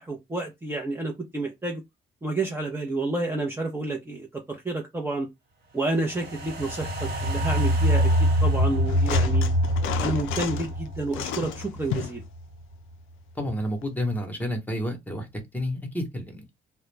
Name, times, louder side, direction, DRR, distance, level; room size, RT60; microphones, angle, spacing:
voice 1, 0.0-1.8 2.2-5.3 5.7-9.5 10.0-12.2, right 2 dB, 10° right, 0.6 m, -30 dB
sound 1, 6.0-12.4 12.7-12.8, equal, 55° right, 1.2 m, -25 dB
sound 2, 8.9-10.7 11.1-12.2 13.8-13.9, left 10 dB, 85° left, 0.4 m, -33 dB
voice 2, 13.3-15.3 15.5-16.5, equal, 10° left, 1.0 m, -30 dB
2.3 x 2.1 x 3.1 m
cardioid pair, 90°, 20 cm